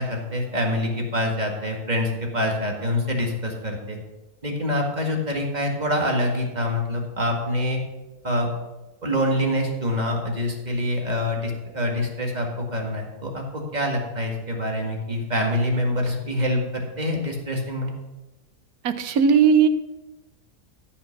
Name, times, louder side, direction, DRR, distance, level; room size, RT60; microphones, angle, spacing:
voice 1, 0.0-4.0 4.4-7.8 8.2-8.5 9.0-17.9, left 1 dB, 25° right, 1 dB, 1.9 m, -25 dB
voice 2, 19.0-19.7, right 6 dB, 70° right, 9 dB, 1.3 m, -17 dB
14.0 x 5.9 x 5.8 m, 1.1 s
omnidirectional pair, 1.7 m